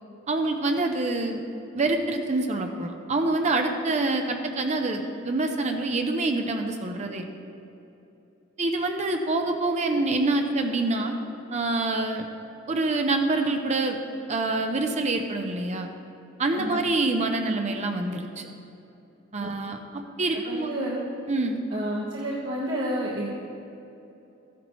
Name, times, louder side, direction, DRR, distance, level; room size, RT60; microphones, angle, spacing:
voice 1, 0.3-1.4 1.7-7.3 8.6-11.1 11.5-12.3 12.7-14.0 14.3-15.9 16.4-18.5 19.3-20.7 21.3-21.6, right 2 dB, 35° right, 4 dB, 0.6 m, -26 dB
voice 2, 20.3-21.0 21.7-23.3, right 1 dB, 65° right, -7 dB, 1.4 m, -30 dB
13.5 x 10.0 x 3.1 m, 2.9 s
head